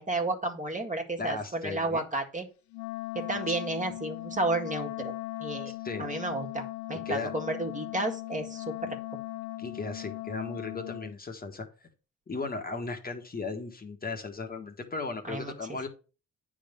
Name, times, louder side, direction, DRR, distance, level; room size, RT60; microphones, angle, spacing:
voice 1, 0.0-2.5 3.1-5.1 5.4-5.7 6.0-9.0 15.3-15.9, right 2 dB, 25° right, 3 dB, 2.0 m, -32 dB
voice 2, 1.2-2.0 5.7-6.1 7.0-7.3 9.6-11.7 12.3-15.9, left 3 dB, 30° left, 4 dB, 1.6 m, -36 dB
Wind instrument woodwind instrument, 2.7-11.1, left 18 dB, 70° left, 0.4 m, -38 dB
9.3 x 3.7 x 6.7 m, 0.35 s
cardioid pair, 90°, 30 cm